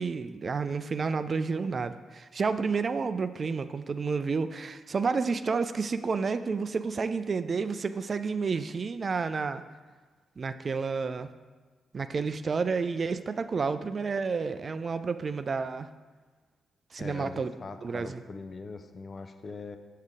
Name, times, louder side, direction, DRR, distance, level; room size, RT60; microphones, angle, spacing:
voice 1, 0.0-9.6 10.4-11.3 11.9-15.9 16.9-17.5 17.8-18.2, right 5 dB, 45° right, 11 dB, 0.3 m, -30 dB
voice 2, 17.0-19.8, left 4 dB, 45° left, 8 dB, 0.6 m, -41 dB
6.5 x 6.5 x 3.6 m, 1.4 s
hypercardioid pair, 40°, 0 cm